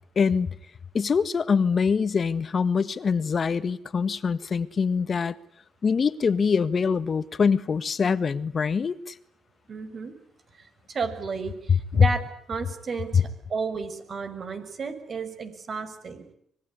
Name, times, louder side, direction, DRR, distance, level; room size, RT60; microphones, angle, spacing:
voice 1, 0.1-0.5 0.9-5.3 5.8-9.1 11.9-12.1 13.1-13.2, left 6 dB, 45° left, 1.6 m, -23 dB
voice 2, 9.7-10.1 10.6-12.2 12.5-16.2, right 5 dB, 45° right, 6.3 m, -33 dB
25.0 x 22.0 x 9.9 m
cardioid pair, 90°, 0 cm